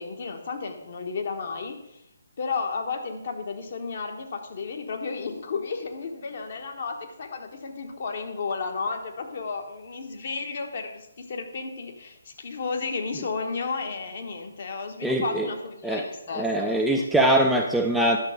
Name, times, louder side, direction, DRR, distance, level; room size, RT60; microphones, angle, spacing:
voice 1, 0.0-2.0 2.4-17.1, left 4 dB, 45° left, 4 dB, 1.3 m, -33 dB
voice 2, 15.0-15.5 15.8-16.1 16.4-18.2, right 1 dB, ahead, 0 dB, 0.5 m, -22 dB
10.5 x 6.4 x 4.9 m, 0.84 s
figure-of-eight pair, 140°, 0 cm